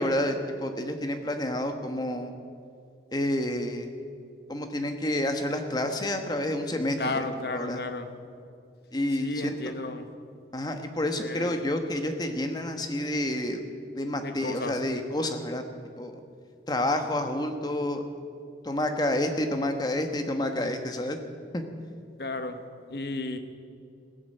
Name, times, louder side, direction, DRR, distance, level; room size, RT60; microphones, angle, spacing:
voice 1, 0.0-2.3 3.1-3.9 4.5-7.8 8.9-9.5 10.5-13.6 14.0-15.6 16.0-16.1 16.7-18.0 18.6-21.2 21.5-21.6, left 1 dB, 25° left, 6 dB, 1.2 m, -29 dB
voice 2, 7.0-8.1 9.2-10.1 11.2-11.6 14.2-14.8 22.2-22.6 22.9-23.4, left 2 dB, 60° left, 8 dB, 1.2 m, -33 dB
16.0 x 11.0 x 7.8 m, 2.4 s
head